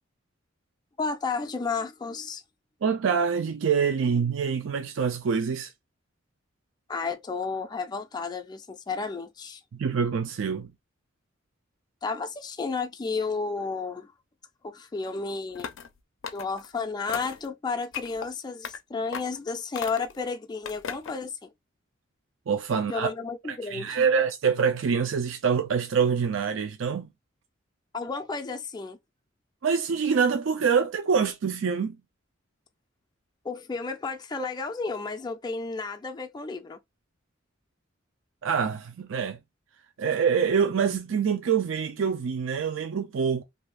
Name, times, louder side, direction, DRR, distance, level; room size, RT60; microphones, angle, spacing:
voice 1, 1.0-2.4 6.9-9.6 12.0-14.1 14.6-15.7 16.3-21.5 22.9-24.0 27.9-29.0 33.4-36.8, left 4 dB, 20° left, 0.4 m, -32 dB
voice 2, 2.8-5.7 9.7-10.7 22.5-23.1 23.5-27.1 29.6-32.0 38.4-39.4 40.0-43.4, right 6 dB, 75° right, 0.4 m, -25 dB
sound 1, 15.5-15.9 16.2-16.7 17.1-17.5 17.9-18.3 18.6-18.8 19.1-19.4 19.7-20.2 20.6-21.2, left 7 dB, 75° left, 0.5 m, -37 dB
2.6 x 2.3 x 3.3 m
head